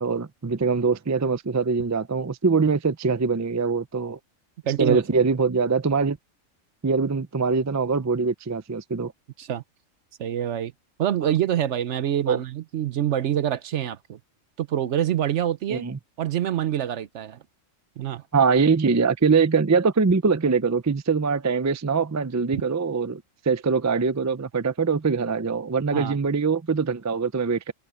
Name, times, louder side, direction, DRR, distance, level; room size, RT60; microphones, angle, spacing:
voice 1, 0.0-4.2 4.8-6.2 6.8-9.1 12.3-12.4 15.7-16.0 18.3-27.7, right 5 dB, 30° right, 0.3 m, -23 dB
voice 2, 4.7-5.0 9.4-9.6 10.2-10.7 11.0-14.2 14.6-15.9 16.2-17.4 18.0-18.2 22.5-22.6 25.9-26.2, right 10 dB, 65° right, 1.0 m, -26 dB
omnidirectional pair, 1.3 m